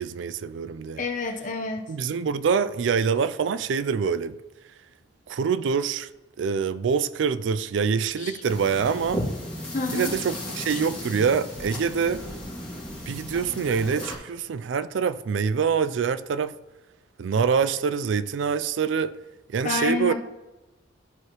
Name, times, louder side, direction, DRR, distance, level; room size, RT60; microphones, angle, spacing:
voice 1, 0.0-1.0 1.9-4.4 5.3-6.1 6.4-9.2 9.9-12.3 13.1-16.5 17.2-19.2 19.5-20.1, right 6 dB, 80° right, 0.4 m, -25 dB
voice 2, 1.0-1.9 8.2-8.3 9.7-10.1 19.6-20.1, left 3 dB, 45° left, 0.9 m, -28 dB
sound 1, 8.4-14.2, equal, 5° left, 2.4 m, -35 dB
13.5 x 4.8 x 3.0 m
head